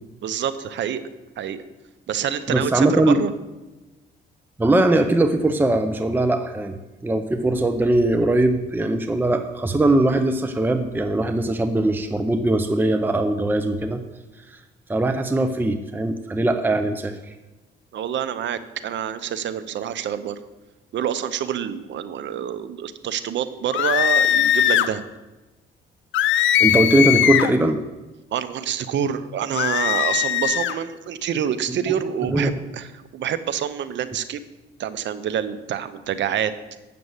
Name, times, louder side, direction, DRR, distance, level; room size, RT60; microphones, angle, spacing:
voice 1, 0.2-1.0 1.4-1.6 2.1-3.3 17.9-20.4 20.9-25.0 28.3-34.4 34.8-36.5, right 9 dB, 70° right, 13 dB, 0.7 m, -27 dB
voice 2, 2.5-3.2 4.6-6.8 7.0-14.0 14.5-14.6 14.9-17.3 26.4-27.8 32.3-32.5, right 2 dB, 10° right, 7 dB, 0.6 m, -20 dB
sound 1, 23.7-24.9 26.1-27.6 29.5-30.8, left 11 dB, 75° left, 0.5 m, -20 dB
7.7 x 6.8 x 8.1 m, 1.1 s
cardioid pair, 90°, 20 cm